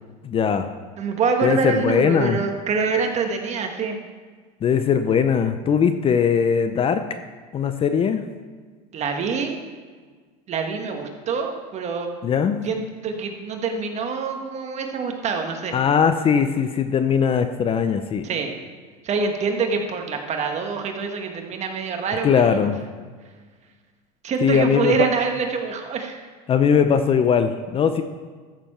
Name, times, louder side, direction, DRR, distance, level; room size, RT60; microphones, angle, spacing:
voice 1, 0.2-0.7 1.4-2.4 4.6-7.1 7.5-8.3 12.2-12.7 15.7-18.3 22.2-22.8 24.4-25.1 26.5-28.0, left 7 dB, 30° left, 9 dB, 0.6 m, -20 dB
voice 2, 1.0-4.0 8.9-9.6 10.5-12.1 12.6-15.8 18.2-18.5 19.0-22.7 24.2-26.2, right 5 dB, 35° right, 4 dB, 1.5 m, -25 dB
13.5 x 6.9 x 4.4 m, 1.5 s
supercardioid pair, 115°, 20 cm